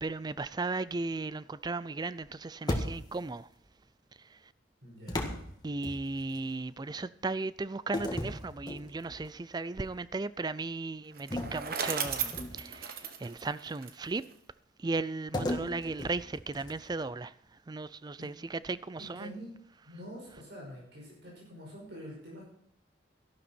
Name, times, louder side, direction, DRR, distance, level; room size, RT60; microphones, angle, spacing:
voice 1, 0.0-3.5 5.6-14.2 14.8-17.3 17.7-19.3, right 3 dB, 20° right, 0.4 m, -36 dB
sound 1, 2.7-3.3 5.1-6.4 7.9-9.3 9.7-10.0 11.3-12.8 15.3-17.0, left 1 dB, 25° left, 1.7 m, -36 dB
voice 2, 4.8-5.4 19.2-19.5 19.8-22.5, equal, 70° right, 5.5 m, -46 dB
Bicycle, 11.1-14.3, right 7 dB, 55° right, 1.2 m, -36 dB
12.5 x 12.0 x 4.4 m
head